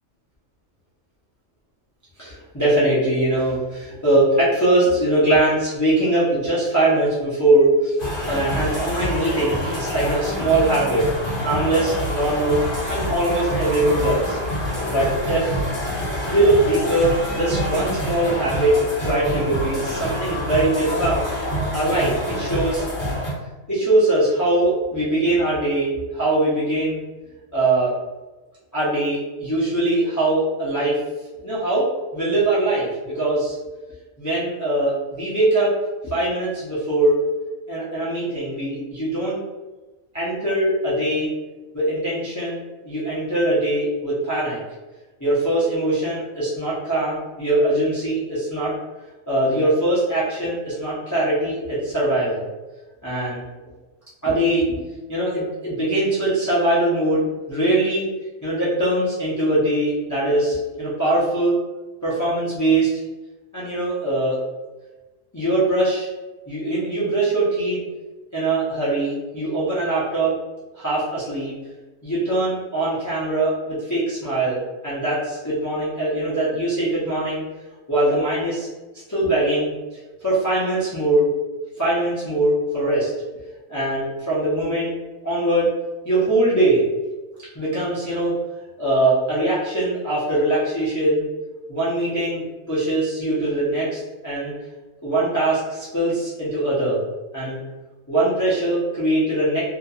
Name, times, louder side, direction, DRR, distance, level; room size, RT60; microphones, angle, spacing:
voice 1, 2.2-8.0 8.3-11.0 11.4-12.6 12.9-14.4 14.9-15.6 16.3-21.3 21.7-22.8 23.7-27.0 27.5-27.9 28.7-31.0 31.4-31.8 32.1-33.6 34.2-35.7 36.0-37.2 37.7-39.4 40.1-41.3 41.7-44.6 45.2-48.7 49.3-52.5 53.0-53.4 54.2-54.8 55.1-58.1 58.4-61.6 62.0-62.9 63.5-64.4 65.3-66.1 66.5-67.8 68.3-70.3 70.8-71.6 72.0-77.4 77.9-78.7 79.1-79.7 80.2-81.3 81.7-83.1 83.7-85.0 85.2-85.7 86.0-86.8 87.5-88.3 88.8-91.2 91.7-94.5 95.0-97.0 97.3-97.6 98.1-99.6, right 1 dB, 25° left, -10 dB, 0.4 m, -21 dB
sound 1, 8.0-23.3, equal, 45° left, 0.9 m, -26 dB
2.7 x 2.5 x 2.4 m, 1.2 s
omnidirectional pair, 1.4 m